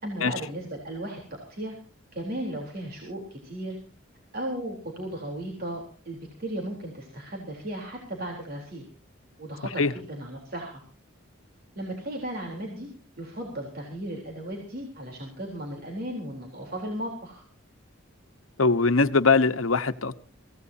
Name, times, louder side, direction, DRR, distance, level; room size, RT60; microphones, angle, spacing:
voice 1, 0.0-1.2 1.5-1.7 2.1-3.8 4.3-8.8 9.4-10.8 11.8-12.9 13.2-17.4, right 1 dB, 50° right, 0 dB, 3.7 m, -35 dB
voice 2, 18.6-20.2, left 4 dB, 85° left, 11 dB, 1.1 m, -21 dB
24.0 x 16.5 x 2.8 m, 0.38 s
head